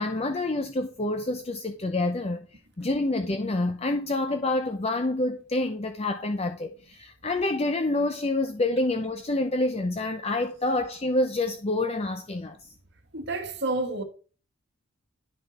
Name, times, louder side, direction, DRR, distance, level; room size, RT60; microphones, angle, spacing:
voice 1, 0.0-2.5 2.8-12.7, left 2 dB, 30° left, 0.7 m, -27 dB
voice 2, 13.1-14.0, right 2 dB, 55° right, 1.6 m, -29 dB
11.5 x 5.8 x 4.2 m
head